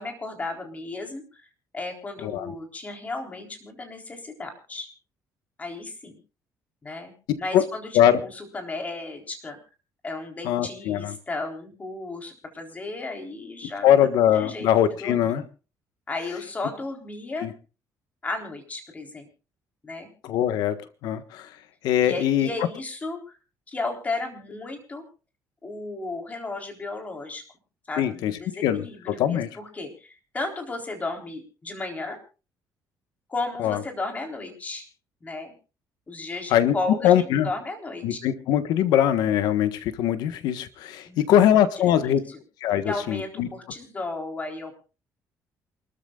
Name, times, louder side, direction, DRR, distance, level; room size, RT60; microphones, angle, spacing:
voice 1, 0.0-1.5 1.7-4.9 5.6-6.2 6.8-7.1 7.4-9.6 10.0-14.7 15.0-15.4 16.1-17.5 18.2-19.3 19.8-20.1 22.0-23.4 23.7-25.1 25.6-27.4 27.9-32.2 33.3-34.9 35.2-35.5 36.1-38.2 41.1-41.3 41.8-42.2 42.9-44.7, left 3 dB, 20° left, 3 dB, 3.8 m, -34 dB
voice 2, 10.4-11.1 13.8-15.4 17.4-17.5 20.2-21.5 21.8-22.5 28.0-28.3 28.6-29.5 33.6-33.8 36.5-36.7 37.0-37.5 38.0-42.2 42.6-43.5, left 10 dB, 80° left, 11 dB, 1.4 m, -22 dB
28.0 x 13.5 x 2.4 m, 0.33 s
cardioid pair, 130°, 7 cm